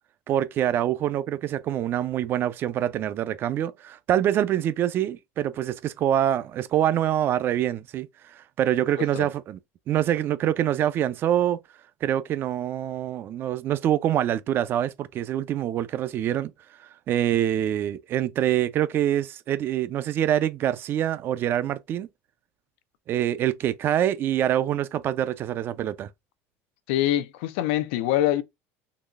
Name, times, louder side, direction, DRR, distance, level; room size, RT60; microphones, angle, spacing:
voice 1, 0.3-9.6 9.9-11.6 12.0-16.5 17.1-22.1 23.1-26.1, right 11 dB, 35° right, 0.4 m, -25 dB
voice 2, 26.9-28.4, left 13 dB, 85° left, 0.6 m, -24 dB
4.0 x 3.0 x 2.4 m
cardioid pair, 155°, 6 cm